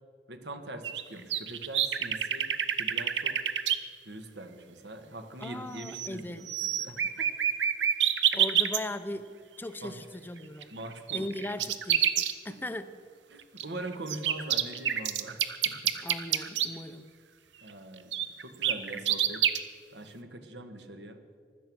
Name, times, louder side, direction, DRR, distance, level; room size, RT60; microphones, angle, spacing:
voice 1, 0.3-2.5 2.8-3.4 4.0-7.3 9.8-10.0 10.7-11.4 13.3-15.9 16.7-16.8 17.6-19.5 19.9-21.2, right 1 dB, 75° right, 7 dB, 1.5 m, -43 dB
sound 1, 0.8-3.8 5.4-5.5 5.8-6.2 6.5-8.8 10.6-12.3 13.6-16.7 18.1-19.6, right 9 dB, 90° right, 0.9 m, -27 dB
voice 2, 5.4-6.5 8.3-10.7 11.1-13.0 16.0-17.1, left 1 dB, 10° left, 11 dB, 0.6 m, -38 dB
16.0 x 12.5 x 6.2 m, 2.1 s
head